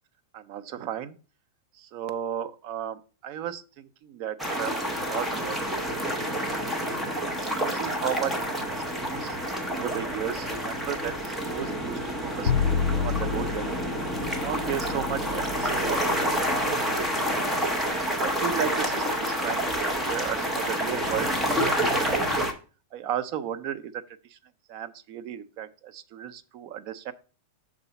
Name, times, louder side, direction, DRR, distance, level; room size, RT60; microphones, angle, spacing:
voice 1, 0.3-1.2 1.7-6.0 7.3-9.4 9.7-13.8 14.4-16.2 16.8-17.6 18.2-19.7 20.1-22.5 22.9-24.4 24.7-27.1, right 10 dB, 40° right, 11 dB, 0.5 m, -35 dB
sound 1, 4.4-22.5, equal, 5° right, 0.7 m, -28 dB
Bowed string instrument, 12.4-18.6, left 7 dB, 65° left, 0.4 m, -31 dB
6.0 x 4.0 x 5.6 m, 0.36 s
supercardioid pair, 165°, 0 cm